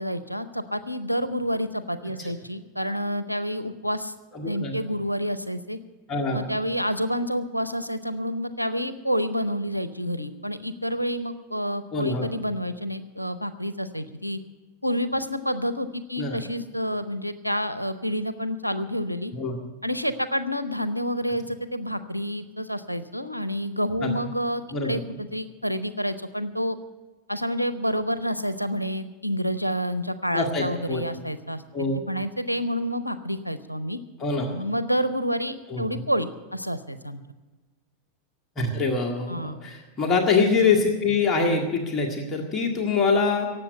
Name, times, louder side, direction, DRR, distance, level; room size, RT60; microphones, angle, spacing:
voice 1, 0.0-4.1 4.5-5.8 6.3-14.4 14.8-19.3 19.8-26.8 27.3-31.6 32.1-34.0 34.5-37.2 39.3-39.6, equal, 90° left, 13 dB, 0.6 m, -28 dB
voice 2, 2.0-2.3 4.3-4.8 6.1-6.6 11.9-12.3 16.2-16.4 19.3-19.6 24.0-24.1 24.7-25.0 30.3-31.0 31.7-32.2 34.2-34.5 35.7-35.8 38.6-43.5, left 4 dB, 25° left, 1 dB, 1.8 m, -25 dB
18.0 x 7.7 x 8.0 m, 1.2 s
figure-of-eight pair, 90°, 0 cm